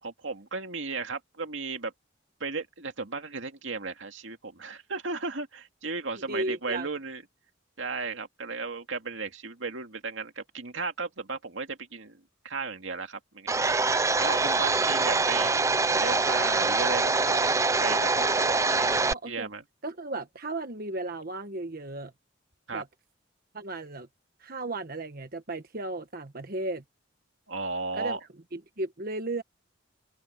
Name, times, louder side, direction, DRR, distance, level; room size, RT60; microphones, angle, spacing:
voice 1, 0.0-1.9 2.4-7.2 7.8-12.2 12.4-15.5 16.0-18.1 18.7-19.6 22.7-22.8 27.5-28.2, right 4 dB, 80° right, 2.3 m, -35 dB
voice 2, 6.3-6.9 18.2-19.5 19.8-22.1 22.7-22.9 23.5-24.1 24.4-26.8 27.9-28.2 28.5-29.4, right 2 dB, 50° right, 1.3 m, -35 dB
Domestic sounds home sounds, 13.5-19.1, right 3 dB, 15° right, 0.6 m, -24 dB
head